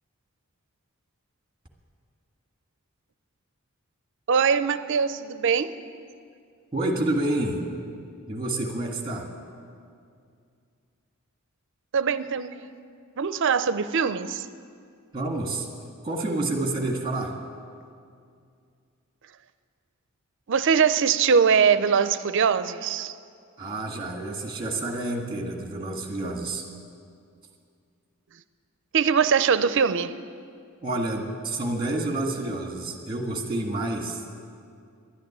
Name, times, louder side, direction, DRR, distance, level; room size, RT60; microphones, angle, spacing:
voice 1, 4.3-5.7 11.9-12.6 13.2-14.5 20.5-23.1 28.9-30.2, right 6 dB, 60° right, 13 dB, 0.5 m, -22 dB
voice 2, 6.7-7.6 8.3-9.3 15.1-15.7 16.0-17.3 23.6-26.6 30.8-34.3, right 2 dB, 20° right, 2 dB, 1.8 m, -29 dB
11.5 x 10.5 x 9.9 m, 2.3 s
head